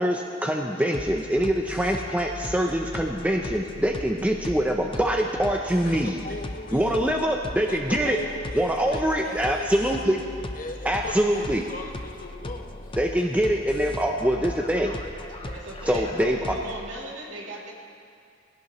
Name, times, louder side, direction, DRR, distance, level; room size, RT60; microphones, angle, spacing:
voice 1, 0.0-6.2 6.7-8.2 8.5-10.4 10.8-11.6 13.0-14.9 15.9-16.6, equal, 10° right, 2 dB, 0.6 m, -24 dB
sound 1, 0.9-16.9, left 1 dB, 30° left, 0.7 m, -38 dB
voice 2, 5.8-7.0 7.7-9.7 10.5-12.9, left 2 dB, 45° left, 2 dB, 1.3 m, -39 dB
voice 3, 15.3-16.1 16.5-17.7, right 1 dB, 70° right, -3 dB, 2.8 m, -39 dB
20.0 x 17.0 x 3.1 m, 2.4 s
head